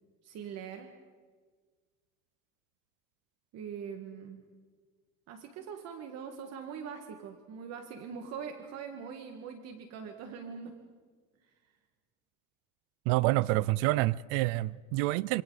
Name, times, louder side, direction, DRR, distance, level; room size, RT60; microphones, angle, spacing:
voice 1, 0.2-0.9 3.5-4.4 5.3-10.8, right 6 dB, 55° right, 1.9 m, -42 dB
voice 2, 13.1-15.4, right 19 dB, 85° right, 0.5 m, -27 dB
26.5 x 26.5 x 4.1 m
cardioid pair, 155°, 32 cm